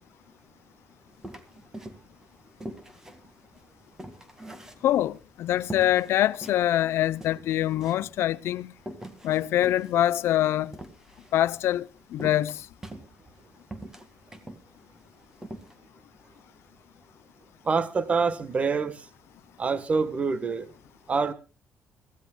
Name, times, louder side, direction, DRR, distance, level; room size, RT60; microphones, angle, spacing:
sound 1, 1.2-2.2 2.6-5.2 5.7-6.6 6.9-7.0 7.2-8.2 8.8-11.4 12.2-13.4 13.7-14.6 15.0-15.1 15.4-15.7, right 1 dB, 10° right, 2.0 m, -42 dB
voice 1, 4.8-8.7 9.2-10.8 11.3-12.7, left 13 dB, 70° left, 0.7 m, -24 dB
voice 2, 17.6-19.1 19.6-20.7 21.1-21.3, right 4 dB, 30° right, 1.3 m, -26 dB
24.5 x 16.0 x 2.3 m
cardioid pair, 140°, 4 cm